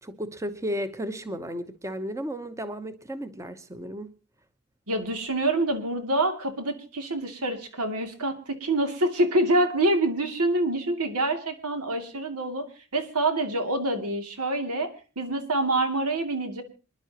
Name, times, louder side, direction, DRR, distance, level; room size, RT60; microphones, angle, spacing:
voice 1, 0.0-4.1, equal, 15° right, 0.9 m, -34 dB
voice 2, 4.9-16.6, right 1 dB, 90° right, 2.6 m, -26 dB
27.0 x 11.0 x 2.9 m
head